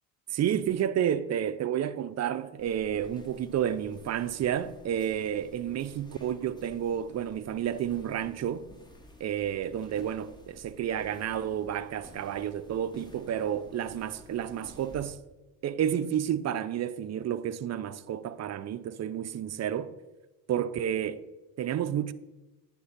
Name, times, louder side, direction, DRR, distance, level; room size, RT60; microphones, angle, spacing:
voice 1, 0.3-8.7 9.2-15.2 15.6-19.9 20.5-21.2 21.6-22.1, right 9 dB, 40° right, 0.5 m, -30 dB
sound 1, 2.6-15.1, equal, 10° left, 1.3 m, -53 dB
9.3 x 3.6 x 5.9 m
supercardioid pair, 70°, 39 cm